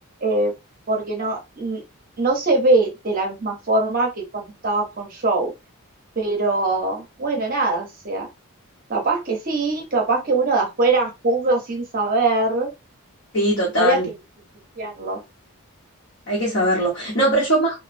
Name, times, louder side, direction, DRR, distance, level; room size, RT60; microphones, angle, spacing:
voice 1, 0.2-0.5 0.9-1.8 2.2-5.5 6.2-8.3 8.9-12.7 13.8-14.0 14.8-15.2, right 2 dB, 40° right, 0.6 m, -22 dB
voice 2, 13.3-14.1 16.3-17.8, right 1 dB, 55° left, 1.0 m, -20 dB
3.0 x 2.1 x 2.4 m
head